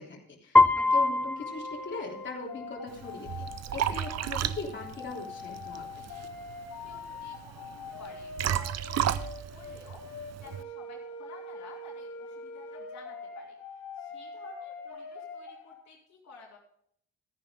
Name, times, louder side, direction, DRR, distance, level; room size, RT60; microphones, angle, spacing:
voice 1, 0.0-6.0, left 4 dB, 40° left, -3 dB, 3.4 m, -40 dB
Piano, 0.6-2.6, left 2 dB, 5° left, 0.3 m, -24 dB
sound 1, 1.4-15.7, left 3 dB, 90° left, 3.2 m, -43 dB
Liquid, 2.9-10.6, right 10 dB, 60° right, 0.7 m, -34 dB
voice 2, 6.5-10.0 10.3-13.6 14.0-16.6, left 4 dB, 65° left, -2 dB, 2.9 m, -52 dB
14.0 x 9.9 x 3.7 m, 0.66 s
cardioid pair, 90°, 30 cm